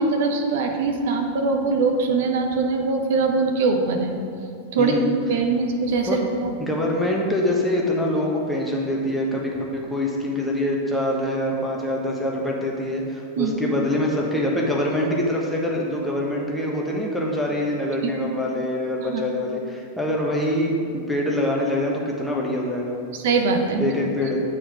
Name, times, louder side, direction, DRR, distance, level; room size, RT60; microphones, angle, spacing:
voice 1, 0.0-4.1 4.7-5.0 5.3-6.5 13.4-13.5 18.0-18.1 19.1-19.2 23.2-23.9, right 4 dB, 55° right, 4 dB, 0.8 m, -22 dB
voice 2, 4.8-5.1 6.1-6.2 6.6-23.0 23.8-24.4, left 1 dB, 5° left, -3 dB, 1.3 m, -24 dB
8.5 x 4.7 x 5.0 m, 2.5 s
figure-of-eight pair, 90°, 0 cm